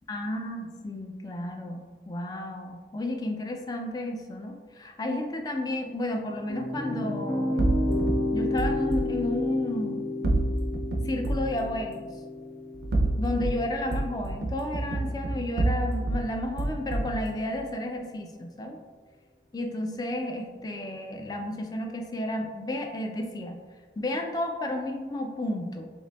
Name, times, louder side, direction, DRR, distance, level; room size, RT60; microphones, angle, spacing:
voice 1, 0.1-7.6 8.3-10.1 11.0-12.1 13.2-18.8 19.5-23.6 24.0-25.9, left 1 dB, 20° left, 3 dB, 0.3 m, -32 dB
sound 1, 6.1-15.2, left 2 dB, 85° left, 1.1 m, -32 dB
sound 2, 7.6-9.1 10.2-11.6 12.7-13.6 13.9-16.3 16.6-17.2, right 2 dB, 70° right, 0.4 m, -28 dB
4.8 x 2.6 x 2.2 m, 1.5 s
head